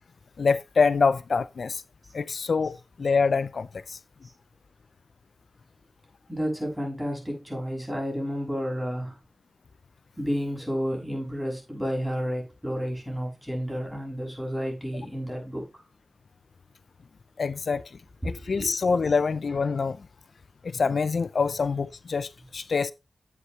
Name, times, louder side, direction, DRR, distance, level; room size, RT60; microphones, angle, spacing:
voice 1, 0.4-1.8 2.1-4.0 17.4-17.8 18.2-20.0 20.6-22.9, left 5 dB, 75° left, 0.4 m, -25 dB
voice 2, 6.3-9.2 10.2-15.7 18.2-18.7 19.0-19.2, equal, 5° right, 6.8 m, -31 dB
11.0 x 8.0 x 3.3 m
cardioid pair, 50°, 0 cm